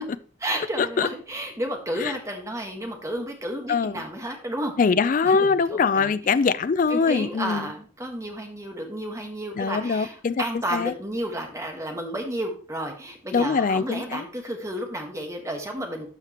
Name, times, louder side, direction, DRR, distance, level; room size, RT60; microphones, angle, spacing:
voice 1, 0.4-4.7 5.2-6.2 6.9-16.1, right 1 dB, 15° right, 1.4 m, -32 dB
voice 2, 3.7-4.0 4.8-7.7 9.6-10.3 10.7-10.9 13.3-14.2, left 5 dB, 45° left, 0.4 m, -22 dB
12.5 x 5.0 x 3.0 m
head